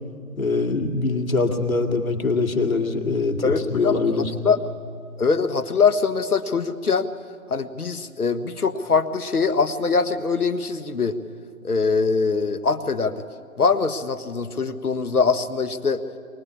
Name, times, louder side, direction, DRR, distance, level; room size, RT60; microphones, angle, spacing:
voice 1, 0.4-4.3, left 3 dB, 70° left, 3 dB, 2.5 m, -23 dB
voice 2, 3.4-4.0 4.4-4.6 5.2-7.1 7.5-11.2 11.6-13.1 13.6-16.0, left 5 dB, 85° left, 10 dB, 1.5 m, -22 dB
24.0 x 19.5 x 8.5 m, 2.3 s
figure-of-eight pair, 165°, 44 cm